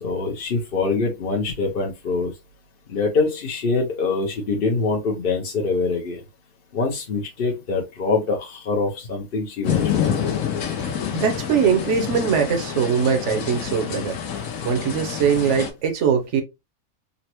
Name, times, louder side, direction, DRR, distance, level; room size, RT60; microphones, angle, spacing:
voice 1, 0.0-2.3 2.9-6.2 6.7-10.1, left 4 dB, 50° left, 0.8 m, -24 dB
sound 1, 9.6-15.7, left 8 dB, 75° left, 1.2 m, -27 dB
voice 2, 11.1-14.2 14.6-16.4, right 7 dB, 60° right, 1.0 m, -21 dB
3.9 x 2.1 x 2.9 m
omnidirectional pair, 1.5 m